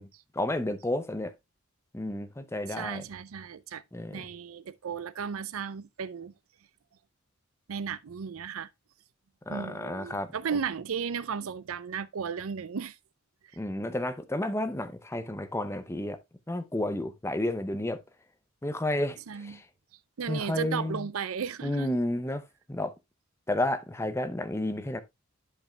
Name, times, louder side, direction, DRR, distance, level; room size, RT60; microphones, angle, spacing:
voice 1, 0.3-1.3 1.9-3.0 3.9-4.2 9.5-10.3 13.6-16.2 16.5-18.0 18.6-19.6 20.3-21.1 21.6-22.4 22.7-22.9 23.5-25.0, left 1 dB, 15° left, 0.6 m, -31 dB
voice 2, 2.7-3.8 4.1-6.3 7.7-8.7 9.5-13.0 19.3-19.6 20.2-22.0, right 6 dB, 85° right, 0.5 m, -35 dB
12.0 x 5.4 x 2.3 m
head